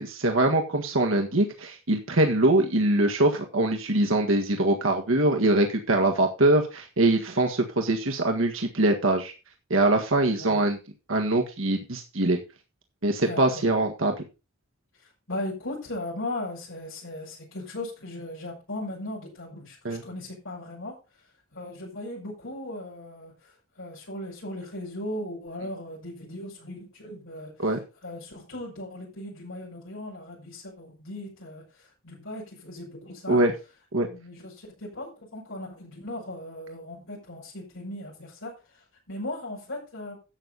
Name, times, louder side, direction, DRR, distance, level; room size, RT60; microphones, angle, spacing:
voice 1, 0.0-9.3 9.7-10.8 11.1-12.4 13.0-14.1 19.9-20.0 27.6-27.8 33.3-33.5 33.9-34.1, right 2 dB, 75° right, 3 dB, 1.6 m, -23 dB
voice 2, 13.2-13.6 15.3-21.0 21.5-27.8 28.0-33.4 34.0-40.2, left 1 dB, 75° left, -5 dB, 6.1 m, -38 dB
12.0 x 8.2 x 4.0 m, 0.30 s
head